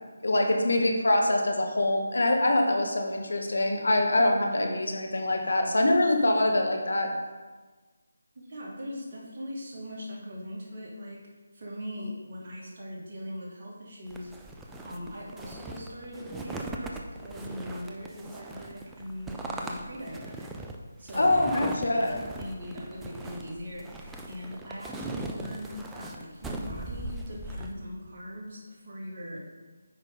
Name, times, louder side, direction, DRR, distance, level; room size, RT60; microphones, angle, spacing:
voice 1, 0.2-7.1 21.1-22.2, left 1 dB, 70° left, 2 dB, 1.3 m, -24 dB
voice 2, 8.3-11.2 11.5-20.5 21.0-29.5, equal, 40° right, -5 dB, 2.4 m, -40 dB
sound 1, 14.1-27.7, right 2 dB, 5° right, 0.5 m, -39 dB
8.8 x 5.2 x 3.9 m, 1.3 s
figure-of-eight pair, 155°, 0 cm